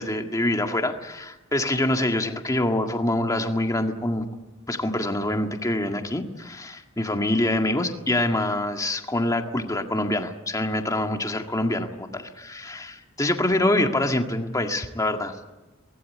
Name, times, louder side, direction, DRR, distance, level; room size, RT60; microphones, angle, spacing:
voice 1, 0.0-4.3 4.7-15.5, left 1 dB, 15° left, 4 dB, 1.8 m, -25 dB
24.0 x 19.0 x 9.4 m, 1.1 s
head